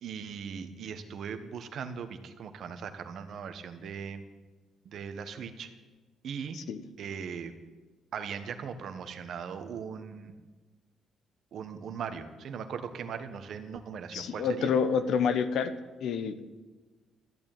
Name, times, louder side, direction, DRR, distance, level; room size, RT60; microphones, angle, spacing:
voice 1, 0.0-4.2 4.8-5.8 6.2-6.6 7.0-7.5 8.1-10.3 11.5-14.7, right 7 dB, 65° right, 8 dB, 1.3 m, -39 dB
voice 2, 14.1-15.7 16.0-16.4, left 6 dB, 75° left, 11 dB, 1.0 m, -28 dB
14.0 x 8.8 x 9.0 m, 1.3 s
cardioid pair, 90°, 0 cm